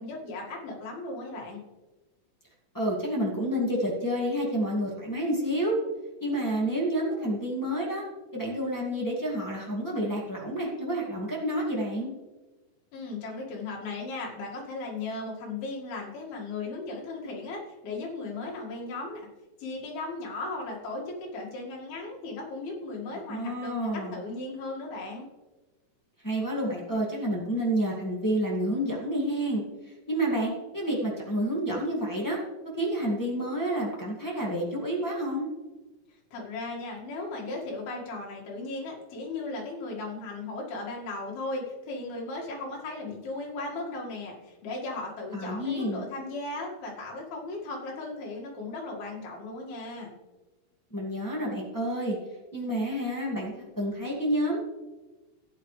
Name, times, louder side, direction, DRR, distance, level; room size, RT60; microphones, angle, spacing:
voice 1, 0.0-1.6 12.9-19.3 19.6-25.3 36.3-50.1, left 2 dB, 85° left, -2 dB, 4.0 m, -36 dB
voice 2, 2.7-5.7 6.2-8.0 8.3-12.1 23.3-24.2 26.2-29.6 30.1-32.4 32.8-35.5 45.3-46.0 50.9-52.2 52.5-54.6, right 1 dB, 20° left, -5 dB, 0.5 m, -29 dB
14.0 x 9.6 x 3.3 m, 1.2 s
omnidirectional pair, 4.3 m